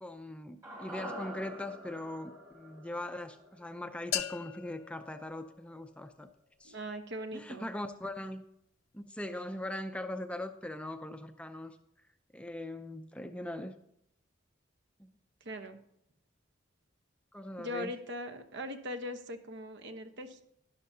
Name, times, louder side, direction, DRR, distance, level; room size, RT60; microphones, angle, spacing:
voice 1, 0.0-6.3 6.6-6.7 7.3-8.4 8.9-11.8 12.3-13.7 15.0-15.1 17.3-17.9, left 1 dB, 5° left, 7 dB, 0.5 m, -40 dB
sound 1, 0.6-4.9 5.2-5.3, equal, 15° right, 1.6 m, -47 dB
sound 2, 4.1-6.1, left 10 dB, 90° left, 0.7 m, -39 dB
voice 2, 6.6-7.7 15.4-15.8 17.6-20.4, equal, 60° right, 6 dB, 1.0 m, -40 dB
12.0 x 11.0 x 2.7 m, 0.75 s
head